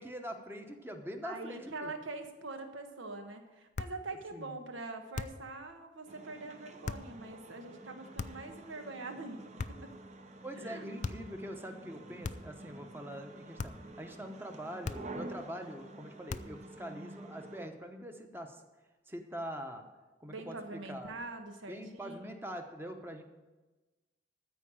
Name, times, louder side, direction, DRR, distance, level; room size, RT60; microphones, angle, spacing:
voice 1, 0.0-1.9 4.3-4.6 10.4-18.6 19.1-19.8 20.2-21.1 21.7-23.2, equal, 10° right, 5 dB, 0.9 m, -44 dB
voice 2, 1.2-9.4 9.7-9.9 10.5-11.1 20.3-22.4, right 3 dB, 85° right, 6 dB, 1.3 m, -44 dB
sound 1, 3.7-4.1 5.1-5.5 6.8-7.1 8.2-8.6 9.6-10.0 11.0-11.4 12.2-12.6 13.6-13.9 14.8-15.3 16.3-16.7, left 4 dB, 40° left, 0.4 m, -40 dB
sound 2, 6.1-17.7, right 2 dB, 40° right, 0.8 m, -49 dB
13.5 x 4.7 x 8.8 m, 1.2 s
head